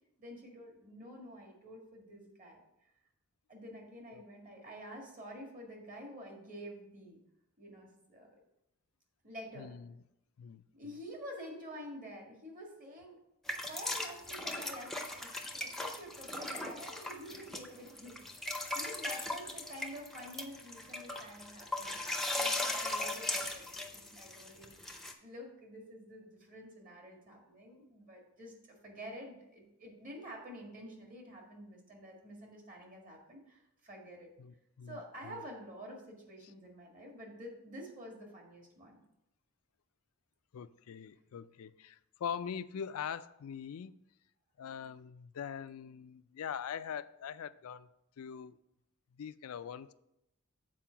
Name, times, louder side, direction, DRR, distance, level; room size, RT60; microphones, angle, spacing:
voice 1, 0.2-2.6 3.5-7.2 7.6-8.3 9.2-9.7 10.7-13.2 13.7-34.3 34.9-39.0, equal, 40° right, 1 dB, 1.8 m, -49 dB
voice 2, 9.6-10.0 10.4-10.6 34.4-35.4 40.5-44.0 44.6-47.9 48.2-48.6 49.1-49.9, left 7 dB, 70° left, 15 dB, 0.4 m, -42 dB
sound 1, 13.5-25.1, left 2 dB, ahead, 0.6 m, -38 dB
7.5 x 4.5 x 5.7 m, 0.84 s
head